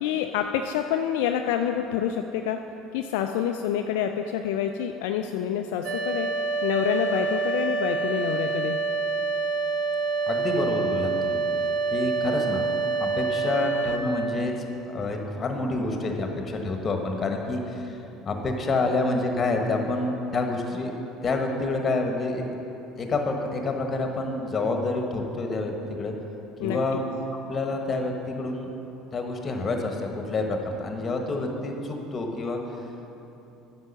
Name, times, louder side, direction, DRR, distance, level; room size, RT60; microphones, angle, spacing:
voice 1, 0.0-2.6 2.9-6.3 6.6-8.8 26.6-27.0, left 9 dB, 70° left, 5 dB, 0.3 m, -27 dB
sound 1, 5.8-14.0, right 4 dB, 65° right, 0.9 m, -27 dB
voice 2, 10.3-11.4 11.9-12.6 13.0-14.5 14.9-21.0 21.2-22.4 23.0-25.7 26.0-26.2 26.6-27.0 27.5-28.7 29.1-32.6, left 3 dB, 35° left, 3 dB, 1.3 m, -28 dB
9.6 x 6.1 x 5.7 m, 3.0 s
hypercardioid pair, 65°, 0 cm